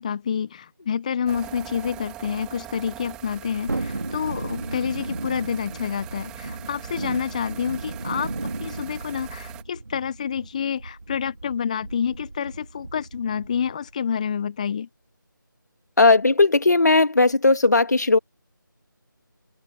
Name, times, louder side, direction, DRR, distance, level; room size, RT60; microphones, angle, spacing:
voice 1, 0.0-8.3 8.6-14.9, left 7 dB, 20° left, 1.3 m, -28 dB
sound 1, 1.3-9.6, right 14 dB, 5° right, 3.0 m, -42 dB
Thunderstorm, 3.7-13.9 14.2-14.3, right 2 dB, 60° right, 5.7 m, -35 dB
voice 2, 16.0-18.2, left 3 dB, 55° left, 2.3 m, -17 dB
figure-of-eight pair, 165°, 11 cm